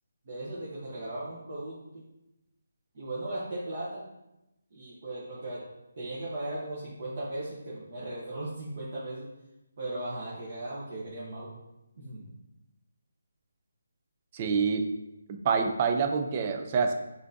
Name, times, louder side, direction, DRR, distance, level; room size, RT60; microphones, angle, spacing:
voice 1, 0.2-2.0 2.9-4.0 4.7-5.6 5.9-9.3 9.8-11.6 12.0-12.3, right 1 dB, 40° right, -7 dB, 0.9 m, -37 dB
voice 2, 14.3-14.9 15.3-16.9, right 5 dB, 25° right, 6 dB, 0.3 m, -27 dB
6.1 x 2.6 x 2.5 m, 0.94 s
hypercardioid pair, 170°, 0 cm